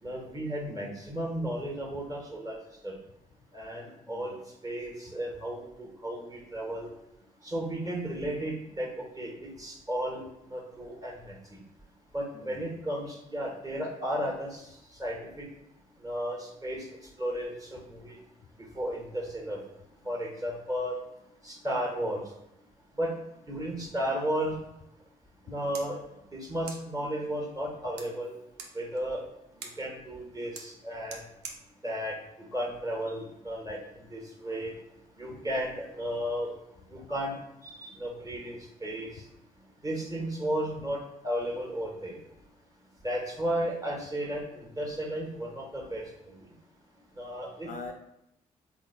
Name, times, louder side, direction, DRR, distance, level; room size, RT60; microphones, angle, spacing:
voice 1, 0.0-2.6 2.8-3.0 3.5-4.4 4.6-6.9 7.4-10.2 10.5-11.3 12.1-15.5 16.0-16.9 17.2-18.2 18.7-19.6 20.0-20.9 21.4-22.2 22.9-23.1 23.5-24.6 25.5-26.0 26.3-28.3 28.7-29.2 29.8-31.2 31.8-32.2 32.5-34.7 35.2-36.5 36.9-37.3 37.6-39.2 39.8-41.0 41.2-42.2 43.0-46.3 47.2-47.7, equal, 20° right, 0 dB, 1.1 m, -34 dB
voice 2, 4.1-4.4 12.3-12.7 35.3-35.4 38.3-38.4 39.1-39.2 47.6-47.9, left 4 dB, 50° left, 4 dB, 0.4 m, -44 dB
sound 1, 25.3-33.3, right 5 dB, 75° right, 0.5 m, -50 dB
3.7 x 3.1 x 2.2 m, 0.83 s
hypercardioid pair, 45°, 18 cm